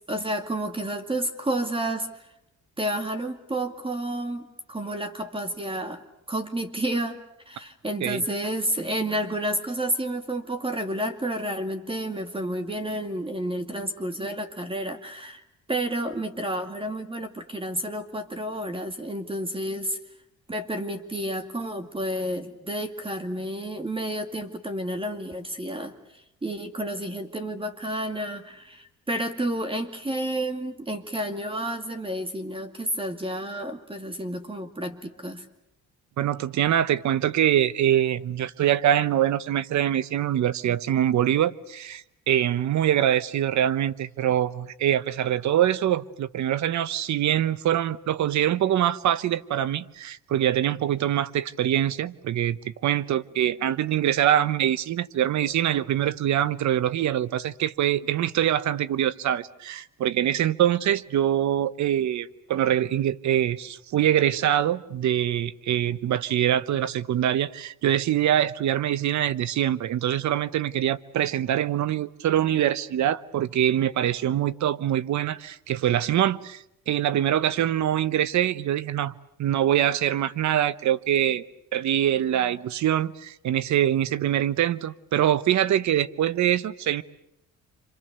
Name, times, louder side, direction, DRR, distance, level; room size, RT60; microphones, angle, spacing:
voice 1, 0.1-2.1 2.8-4.4 4.7-7.2 7.5-15.4 15.7-20.0 20.5-25.9 26.4-35.4, right 1 dB, 15° right, 2.2 m, -30 dB
voice 2, 36.2-79.1 79.4-81.4 81.7-87.0, right 11 dB, 70° right, 1.0 m, -24 dB
29.0 x 26.0 x 6.8 m
cardioid pair, 90°, 30 cm